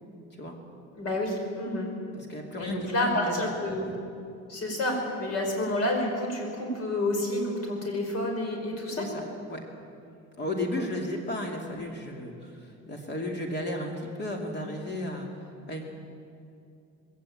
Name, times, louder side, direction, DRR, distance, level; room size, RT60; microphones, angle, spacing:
voice 1, 0.9-1.9 2.6-3.9 4.5-9.1 10.7-10.8, left 1 dB, 55° left, 2 dB, 5.3 m, -29 dB
voice 2, 2.1-3.3 9.0-9.2 9.5-9.6 10.4-15.8, left 1 dB, 35° left, 1 dB, 2.7 m, -34 dB
20.5 x 16.5 x 8.6 m, 2.5 s
cardioid pair, 150°, 30 cm